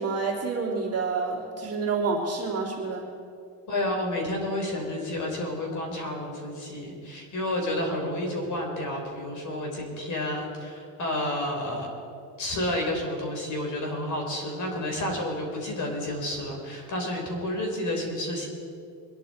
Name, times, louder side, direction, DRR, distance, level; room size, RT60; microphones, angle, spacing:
voice 1, 0.0-3.1, right 4 dB, 30° right, -2 dB, 3.0 m, -28 dB
voice 2, 3.7-11.9 12.4-18.5, left 1 dB, 40° left, 1 dB, 4.3 m, -30 dB
23.0 x 11.0 x 4.4 m, 2.5 s
supercardioid pair, 110°, 48 cm